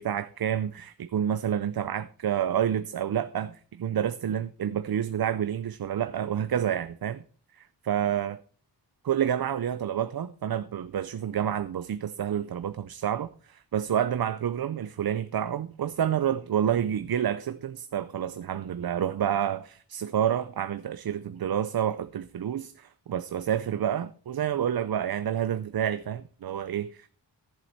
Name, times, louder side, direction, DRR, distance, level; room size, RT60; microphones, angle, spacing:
voice 1, 0.0-7.2 7.8-8.4 9.0-27.1, right 9 dB, 60° right, 0.6 m, -29 dB
14.0 x 7.5 x 4.5 m
wide cardioid pair, 165°, 43 cm